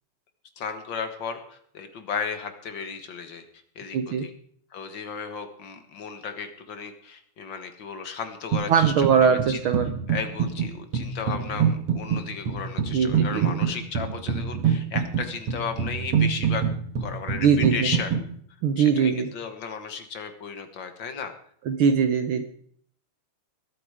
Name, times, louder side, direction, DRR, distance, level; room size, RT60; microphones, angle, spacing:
voice 1, 0.6-3.4 3.7-4.3 4.7-9.6 10.1-16.7 17.0-18.2 18.8-21.3, left 6 dB, 50° left, 8 dB, 1.6 m, -34 dB
voice 2, 3.9-4.3 8.7-9.9 12.9-13.6 17.4-17.9 18.6-19.3 21.7-22.5, right 7 dB, 75° right, 8 dB, 1.2 m, -21 dB
sound 1, 8.5-9.1 9.4-18.3, right 7 dB, 55° right, 2.3 m, -26 dB
21.0 x 8.8 x 4.8 m, 0.62 s
omnidirectional pair, 3.3 m